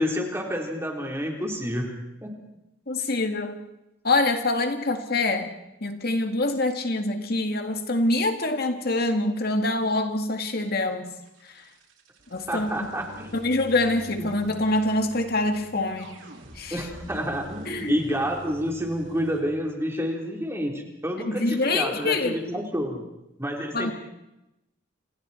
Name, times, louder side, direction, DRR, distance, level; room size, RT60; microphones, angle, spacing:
voice 1, 0.0-1.9 2.2-2.3 12.5-13.3 14.2-14.3 16.7-23.1 23.4-23.9, equal, 15° right, 1 dB, 3.9 m, -29 dB
voice 2, 2.9-3.6 4.0-5.5 5.8-11.1 12.3-12.7 13.3-16.1 16.6-16.8 17.7-17.9 21.3-22.4 23.7-23.9, left 2 dB, 55° left, 5 dB, 2.0 m, -25 dB
sound 1, 10.8-19.4, equal, 90° right, 4.9 m, -46 dB
29.5 x 28.0 x 4.4 m, 0.90 s
head